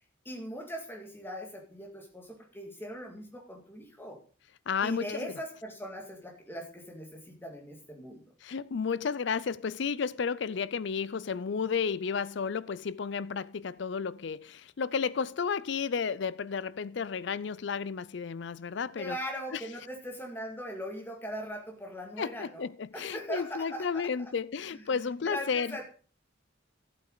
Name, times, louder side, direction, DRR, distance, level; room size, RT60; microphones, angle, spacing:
voice 1, 0.3-4.2 4.8-8.2 19.0-22.7 22.9-24.0 24.7-25.8, equal, 10° left, 2.1 m, -40 dB
voice 2, 4.7-5.3 8.4-19.2 19.5-19.6 22.2-25.8, left 6 dB, 60° left, 0.4 m, -32 dB
12.5 x 8.3 x 3.9 m
head